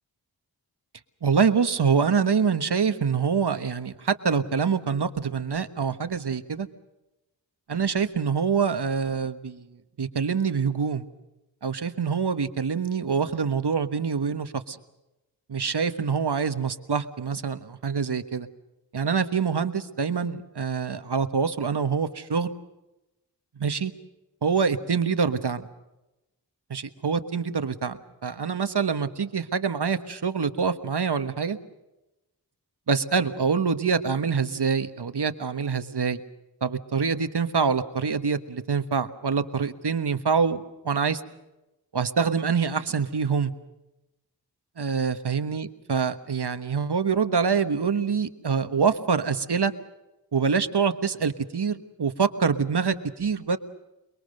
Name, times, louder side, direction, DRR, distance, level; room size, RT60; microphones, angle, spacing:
voice 1, 1.2-6.7 7.7-9.6 10.0-11.1 11.6-14.8 15.5-18.5 18.9-22.5 23.6-23.9 24.4-25.6 26.7-31.6 32.9-36.2 36.6-41.2 41.9-43.5 44.8-49.7 50.3-53.6, right 5 dB, 75° right, 10 dB, 1.4 m, -25 dB
28.5 x 21.5 x 6.6 m, 0.96 s
wide cardioid pair, 75°, 41 cm